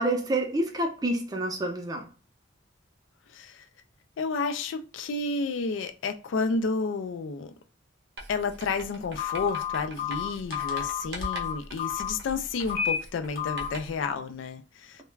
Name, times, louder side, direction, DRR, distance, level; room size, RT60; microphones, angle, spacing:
voice 1, 0.0-2.1, right 1 dB, 20° right, 0.5 m, -28 dB
voice 2, 3.3-3.7 4.2-7.5 8.3-15.0, left 4 dB, 75° left, 0.3 m, -31 dB
Writing, 8.2-14.1, right 1 dB, 65° right, 0.6 m, -43 dB
Telephone, 9.2-12.1 12.6-13.0 13.4-13.7, left 8 dB, 50° left, 0.8 m, -30 dB
2.3 x 2.1 x 3.1 m
head